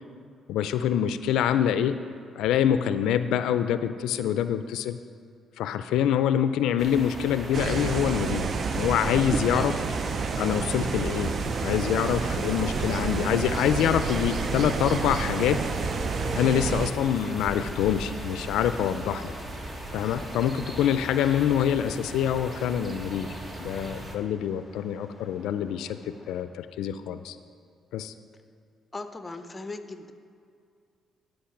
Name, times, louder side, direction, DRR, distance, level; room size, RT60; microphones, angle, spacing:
voice 1, 0.5-2.0 2.4-5.0 5.6-8.5 8.8-9.7 10.4-11.4 11.6-15.6 16.4-19.3 19.9-23.3 23.6-27.4 27.9-28.1, left 9 dB, 90° left, 11 dB, 0.3 m, -25 dB
sound 1, 6.8-24.2, right 1 dB, 25° right, 1.2 m, -37 dB
sound 2, 7.5-16.9, right 5 dB, 50° right, 0.5 m, -29 dB
sound 3, 11.0-26.4, left 1 dB, 10° right, 2.2 m, -49 dB
voice 2, 28.9-30.1, left 3 dB, 20° left, 8 dB, 0.7 m, -37 dB
11.5 x 5.5 x 5.8 m, 2.3 s
cardioid pair, 90°, 0 cm